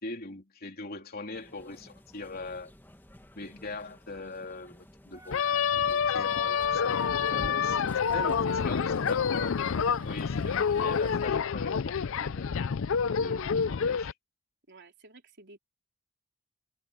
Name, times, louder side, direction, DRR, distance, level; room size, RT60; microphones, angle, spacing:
voice 1, 0.0-2.7 3.4-7.8 8.1-9.6 10.0-12.5 13.2-14.1, left 3 dB, 45° left, 3.5 m, -41 dB
sound 1, 1.3-11.3, equal, 10° left, 1.9 m, -51 dB
sound 2, 5.1-11.2, right 2 dB, 15° right, 1.7 m, -53 dB
sound 3, 5.3-14.1, left 6 dB, 65° left, 0.5 m, -28 dB
voice 2, 7.5-7.8 8.2-8.9 14.7-15.6, right 2 dB, 55° right, 4.1 m, -52 dB
head